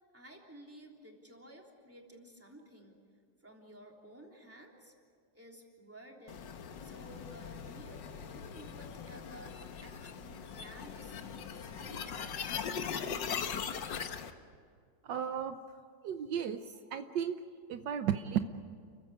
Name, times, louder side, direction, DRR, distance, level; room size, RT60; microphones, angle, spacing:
voice 1, 0.1-3.0 3.4-4.9 5.3-13.7, equal, 5° right, 0 dB, 3.3 m, -54 dB
sound 1, 6.3-14.3, left 7 dB, 80° left, 1.8 m, -40 dB
voice 2, 15.0-15.6 16.0-17.4 17.7-18.4, right 9 dB, 75° right, 8 dB, 1.5 m, -34 dB
30.0 x 15.5 x 9.9 m, 2.1 s
omnidirectional pair, 2.0 m